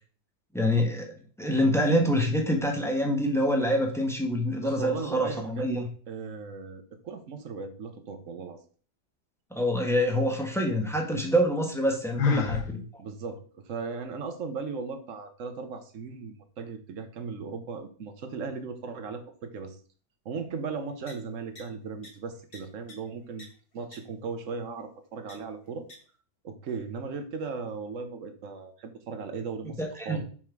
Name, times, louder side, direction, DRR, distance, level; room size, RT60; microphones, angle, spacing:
voice 1, 0.5-5.9 9.5-12.8 29.8-30.2, equal, ahead, 1 dB, 1.0 m, -26 dB
voice 2, 4.6-5.8 6.1-8.6 12.3-12.6 13.0-19.8 20.2-23.5 23.7-25.9 26.4-30.2, right 4 dB, 55° right, 8 dB, 1.1 m, -37 dB
Sigh, 12.2-12.7, left 5 dB, 75° left, 1.4 m, -25 dB
sound 1, 21.1-21.2 21.6-21.7 22.0-22.1 22.5-22.6 22.9-23.0 23.4-23.5 23.9-24.0 25.3-25.4 25.9-26.0, left 2 dB, 35° left, 1.6 m, -46 dB
5.9 x 4.3 x 4.6 m, 0.42 s
omnidirectional pair, 1.8 m